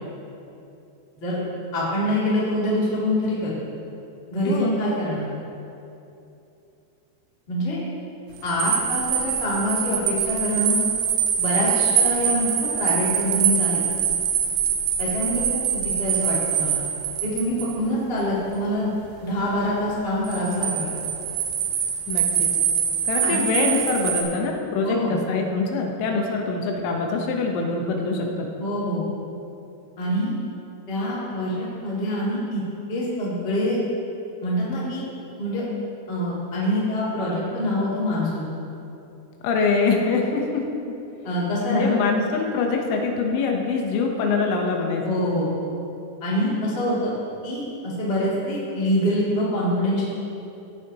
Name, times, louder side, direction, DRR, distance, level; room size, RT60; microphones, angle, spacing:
voice 1, 1.7-3.5 4.3-5.2 7.5-7.8 8.4-10.8 11.4-13.8 15.0-16.8 17.2-18.9 19.2-20.9 23.2-23.5 24.8-25.2 28.6-29.0 30.0-30.3 30.9-32.6 32.9-33.8 34.4-35.0 35.4-35.6 36.1-38.5 41.2-41.9 45.1-45.5 46.2-47.1 47.4-50.0, left 1 dB, 30° left, -8 dB, 1.0 m, -25 dB
voice 2, 4.5-4.8 22.1-22.5 23.1-28.5 39.4-41.0 41.7-45.2, left 4 dB, 80° left, 1 dB, 3.3 m, -24 dB
sound 1, 8.4-17.8 20.2-24.2, right 8 dB, 85° right, 3.2 m, -24 dB
16.5 x 8.2 x 2.9 m, 2.8 s
omnidirectional pair, 5.8 m